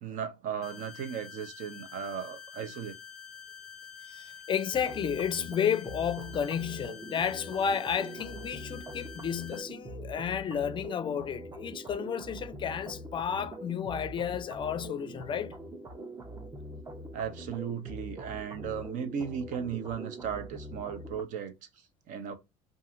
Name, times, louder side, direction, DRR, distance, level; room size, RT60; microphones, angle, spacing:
voice 1, 0.0-2.9 17.1-22.3, right 7 dB, 65° right, 0.8 m, -36 dB
sound 1, 0.6-9.6, left 7 dB, 5° left, 0.9 m, -48 dB
voice 2, 4.0-15.6, left 8 dB, 35° left, 0.5 m, -32 dB
sound 2, 4.7-21.2, right 1 dB, 20° right, 0.7 m, -43 dB
2.7 x 2.6 x 2.4 m
supercardioid pair, 85°, 15 cm